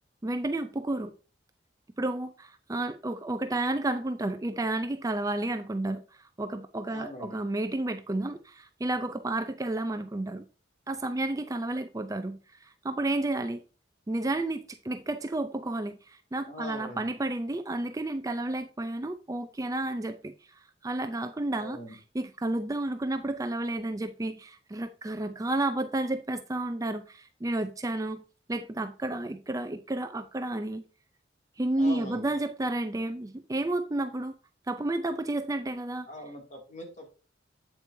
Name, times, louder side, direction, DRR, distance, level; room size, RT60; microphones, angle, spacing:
voice 1, 0.2-1.1 2.0-10.4 10.9-13.6 14.1-20.3 20.8-28.2 28.5-30.8 31.6-34.3 34.7-36.1, right 2 dB, 20° right, 0.4 m, -31 dB
voice 2, 6.9-7.4 16.5-17.1 21.5-22.0 31.7-32.3 36.1-37.1, equal, 40° left, 2.5 m, -42 dB
8.3 x 8.0 x 2.7 m
head